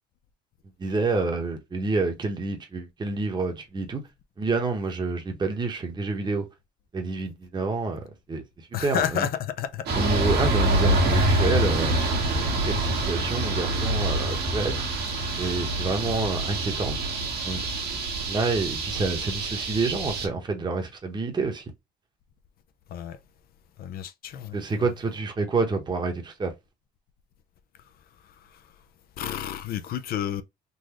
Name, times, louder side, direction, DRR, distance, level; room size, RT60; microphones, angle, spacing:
voice 1, 0.8-4.1 4.4-6.4 6.9-9.3 9.9-12.1 12.4-14.9 15.4-17.0 17.4-17.7 18.3-21.6 24.5-26.5, right 3 dB, 25° right, 1.0 m, -28 dB
voice 2, 8.7-9.9 22.9-23.2 23.8-24.9 28.2-28.6 29.2-30.4, left 9 dB, 65° left, 0.5 m, -31 dB
sound 1, 9.9-20.3, right 2 dB, 70° right, 1.5 m, -26 dB
3.9 x 2.5 x 3.0 m
cardioid pair, 110°, 17 cm